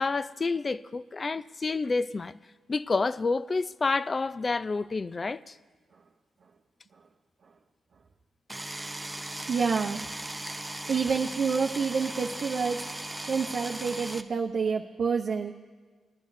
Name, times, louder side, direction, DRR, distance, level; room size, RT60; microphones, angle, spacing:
voice 1, 0.0-2.3 2.7-5.6, left 3 dB, 35° left, 0.3 m, -29 dB
sound 1, 8.5-14.2, right 1 dB, 10° right, 0.6 m, -38 dB
voice 2, 9.5-10.0 10.9-12.8 13.3-15.5, right 5 dB, 60° right, 0.7 m, -28 dB
20.0 x 10.5 x 2.6 m
cardioid pair, 80°, 0 cm